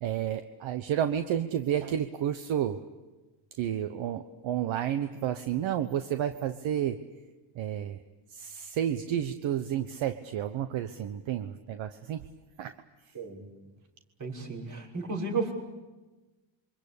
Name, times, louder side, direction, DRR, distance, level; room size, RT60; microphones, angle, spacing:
voice 1, 0.0-2.8 3.5-7.0 7.5-8.0 8.3-12.3 12.6-12.7 13.0-13.2, right 10 dB, 70° right, 9 dB, 1.2 m, -31 dB
voice 2, 14.2-15.5, right 3 dB, 40° right, -2 dB, 6.2 m, -33 dB
27.5 x 24.0 x 8.6 m, 1.2 s
cardioid pair, 135°, 49 cm